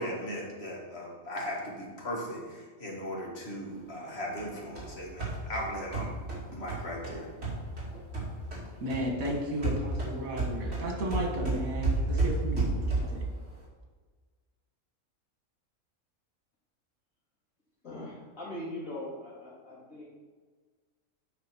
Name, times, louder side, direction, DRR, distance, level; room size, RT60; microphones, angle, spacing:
voice 1, 0.0-6.1 6.5-7.3, equal, 50° left, -2 dB, 1.9 m, -37 dB
sound 1, 4.4-8.6 8.9-13.3, right 3 dB, 50° right, 2.6 m, -32 dB
voice 2, 8.8-13.2, equal, 85° right, 0 dB, 1.9 m, -34 dB
voice 3, 17.8-20.1, left 1 dB, 70° left, -7 dB, 3.1 m, -41 dB
8.9 x 5.2 x 4.4 m, 1.5 s
omnidirectional pair, 1.4 m